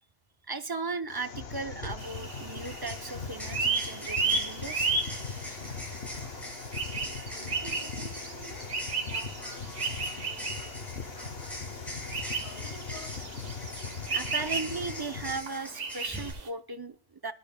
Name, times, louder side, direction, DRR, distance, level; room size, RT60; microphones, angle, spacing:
voice 1, 0.4-4.9 14.1-17.3, right 3 dB, 35° right, 10 dB, 0.4 m, -37 dB
sound 1, 1.1-15.4, left 5 dB, 60° left, 1.1 m, -40 dB
sound 2, 1.8-1.9 2.6-16.3, equal, ahead, 6.4 m, -43 dB
sound 3, 2.0-16.5, right 4 dB, 85° right, 1.7 m, -34 dB
voice 2, 7.3-11.9 12.3-13.2, right 1 dB, 45° left, -5 dB, 7.4 m, -50 dB
24.5 x 10.5 x 2.2 m, 0.31 s
omnidirectional pair, 1.2 m